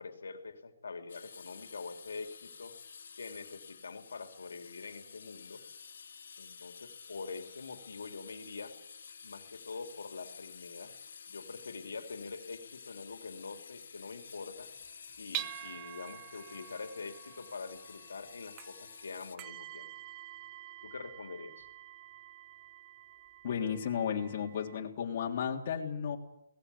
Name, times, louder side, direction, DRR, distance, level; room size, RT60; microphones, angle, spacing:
voice 1, 0.0-2.7 3.2-5.6 6.4-8.7 9.2-10.9 11.3-14.7 15.2-19.9 20.8-21.7, left 4 dB, 85° left, 6 dB, 3.0 m, -45 dB
sound 1, 1.1-19.4, left 6 dB, 65° left, 3.0 m, -51 dB
sound 2, 14.6-24.8, right 13 dB, 20° right, 1.0 m, -47 dB
voice 2, 23.4-26.2, left 7 dB, 40° left, 0 dB, 3.4 m, -33 dB
23.0 x 19.0 x 8.4 m, 0.80 s
hypercardioid pair, 165°, 0 cm